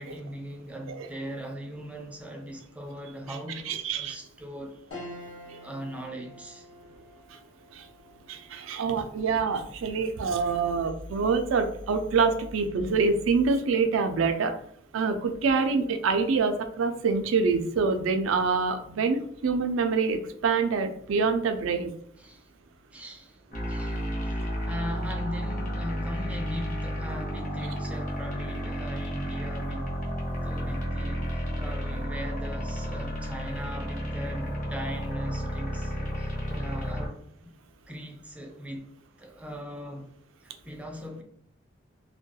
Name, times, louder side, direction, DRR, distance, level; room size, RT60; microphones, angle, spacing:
voice 1, 0.0-4.8 5.6-6.7 10.4-10.5 22.2-22.5 22.9-24.4 24.6-30.0 30.4-37.5 37.9-38.9 39.2-40.1 40.4-41.2, equal, 5° right, 0.4 m, -39 dB
voice 2, 3.7-4.2 7.7-7.9 8.3-14.5 14.9-21.9, right 4 dB, 85° right, 0.4 m, -26 dB
sound 1, 4.9-14.5 15.0-15.1 16.4-16.9, left 1 dB, 80° left, 0.8 m, -50 dB
sound 2, 23.5-37.1, equal, 45° left, 0.7 m, -32 dB
2.2 x 2.2 x 2.7 m
head